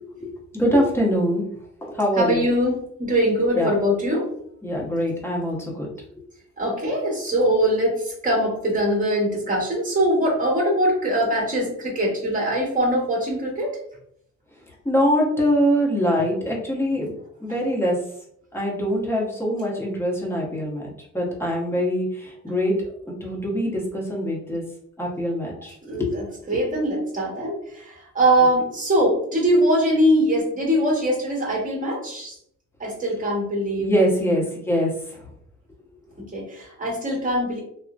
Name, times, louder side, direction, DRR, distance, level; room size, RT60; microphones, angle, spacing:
voice 1, 0.5-1.4 1.8-2.5 3.6-3.7 4.6-5.9 14.8-17.1 17.4-18.0 18.5-20.8 21.1-22.8 23.1-24.6 25.0-26.1 33.8-34.9, equal, 10° left, -3 dB, 0.9 m, -23 dB
voice 2, 2.2-4.3 6.6-13.8 21.7-21.8 22.5-22.6 25.8-32.4 32.8-33.9 36.2-37.6, equal, 25° right, -2 dB, 1.4 m, -22 dB
2.9 x 2.1 x 2.4 m, 0.69 s
cardioid pair, 90°, 30 cm